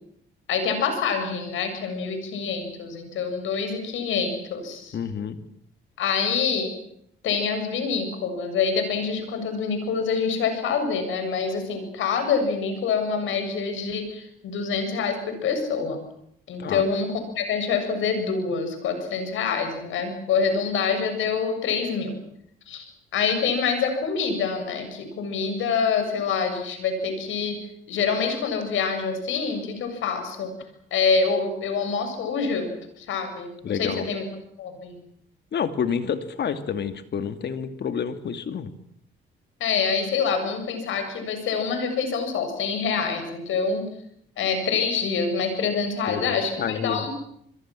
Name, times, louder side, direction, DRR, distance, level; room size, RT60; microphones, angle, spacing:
voice 1, 0.5-5.0 6.0-6.7 7.2-16.0 16.5-17.1 17.4-22.2 22.7-27.6 27.9-30.5 30.9-34.2 34.6-34.9 39.6-43.8 44.4-47.1, left 5 dB, 80° left, 7 dB, 7.5 m, -26 dB
voice 2, 4.9-5.4 16.6-16.8 33.6-34.1 35.5-38.7 46.1-47.1, left 7 dB, 55° left, 10 dB, 2.5 m, -29 dB
29.0 x 22.5 x 7.7 m, 0.71 s
cardioid pair, 90°, 20 cm